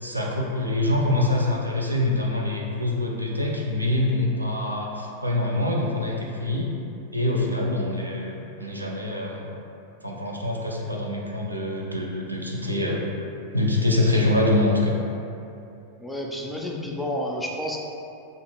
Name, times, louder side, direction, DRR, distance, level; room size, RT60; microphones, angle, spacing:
voice 1, 0.0-6.7 7.1-9.5 10.0-13.0 13.5-14.9, left 1 dB, 85° right, -2 dB, 0.3 m, -25 dB
voice 2, 16.0-17.8, left 1 dB, 5° left, -2 dB, 0.3 m, -30 dB
2.5 x 2.4 x 2.8 m, 2.7 s
figure-of-eight pair, 90°, 0 cm